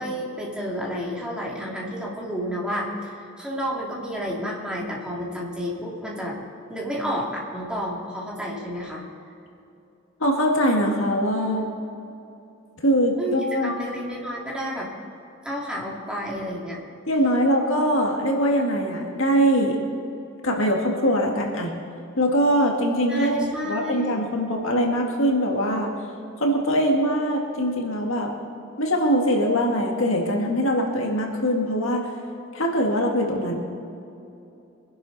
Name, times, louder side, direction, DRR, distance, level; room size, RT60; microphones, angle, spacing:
voice 1, 0.0-6.4 6.7-9.0 13.2-13.4 13.6-14.9 15.4-16.8 23.1-24.3, equal, 5° right, -5 dB, 2.6 m, -31 dB
voice 2, 10.2-11.7 12.8-13.7 17.1-19.8 20.4-21.7 22.2-25.9 26.4-28.3 28.8-32.0 32.5-33.5, equal, 70° left, 1 dB, 2.0 m, -22 dB
23.5 x 11.0 x 4.1 m, 2.7 s
head